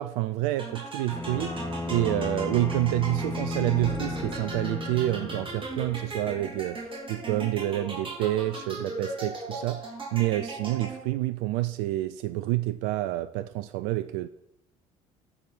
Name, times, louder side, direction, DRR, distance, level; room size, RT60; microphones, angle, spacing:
voice 1, 0.0-1.6 1.9-9.9 10.1-14.3, right 16 dB, 65° right, 0.5 m, -28 dB
sound 1, 0.6-11.3, right 2 dB, 30° right, 3.6 m, -38 dB
Bowed string instrument, 1.1-5.6, left 3 dB, 15° left, 0.9 m, -34 dB
sound 2, 1.3-6.7, right 4 dB, 45° right, 4.1 m, -44 dB
14.0 x 4.9 x 6.1 m
hypercardioid pair, 60°, 18 cm